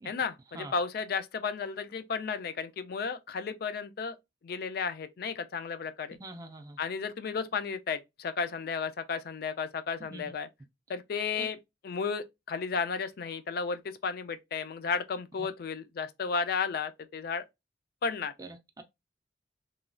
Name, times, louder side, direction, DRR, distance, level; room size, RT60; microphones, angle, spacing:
voice 1, 0.0-4.2 4.4-6.2 6.8-10.5 10.9-11.6 11.8-17.4 18.0-18.3, left 5 dB, 55° left, 0.3 m, -33 dB
voice 2, 6.2-6.8 10.1-10.2 15.4-15.5 18.4-18.8, right 2 dB, 20° right, 0.4 m, -44 dB
3.0 x 2.2 x 2.4 m
head